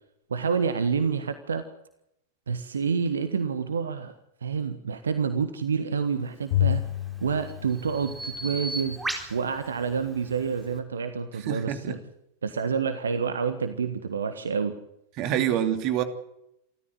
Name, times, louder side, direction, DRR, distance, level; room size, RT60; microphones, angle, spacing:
voice 1, 0.3-1.6 2.5-4.1 4.4-6.9 7.2-9.0 9.3-12.0 12.4-14.7, right 6 dB, 70° right, 10 dB, 1.5 m, -28 dB
Bowed string instrument, 6.5-8.9, left 13 dB, 50° left, 0.9 m, -29 dB
Bird vocalization bird call bird song, 6.6-10.8, right 2 dB, 10° right, 4.2 m, -38 dB
voice 2, 11.4-12.0 15.2-16.0, right 10 dB, 40° right, 8 dB, 2.8 m, -26 dB
28.0 x 14.0 x 8.1 m, 0.81 s
figure-of-eight pair, 90°, 0 cm